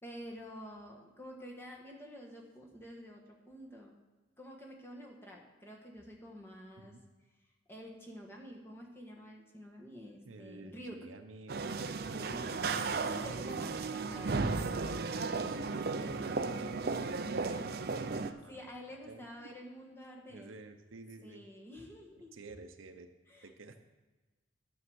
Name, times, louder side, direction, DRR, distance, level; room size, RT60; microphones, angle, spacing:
voice 1, 0.0-3.9 4.4-6.9 7.7-11.0 12.2-14.5 16.0-16.3 17.4-17.7 18.5-20.5 21.2-22.3 23.3-23.5, equal, 10° left, -1 dB, 1.4 m, -49 dB
voice 2, 10.2-11.8 15.4-15.9 16.3-16.8 17.4-18.7 19.1-19.5 20.3-21.4 22.3-23.1 23.4-23.8, right 3 dB, 80° right, 7 dB, 0.8 m, -51 dB
sound 1, 11.5-18.3, right 4 dB, 50° right, 0.5 m, -35 dB
9.9 x 6.4 x 6.2 m, 1.2 s
head